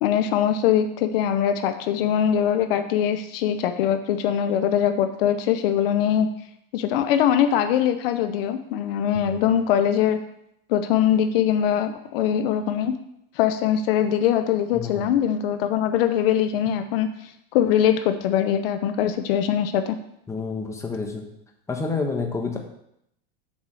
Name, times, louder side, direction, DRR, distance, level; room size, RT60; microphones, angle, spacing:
voice 1, 0.0-6.3 6.7-10.2 10.7-12.9 13.4-17.1 17.5-20.0, left 9 dB, 75° left, 9 dB, 0.8 m, -22 dB
voice 2, 20.3-21.2 21.7-22.6, left 4 dB, 10° left, 2 dB, 1.1 m, -28 dB
7.2 x 4.9 x 6.2 m, 0.76 s
supercardioid pair, 150°, 29 cm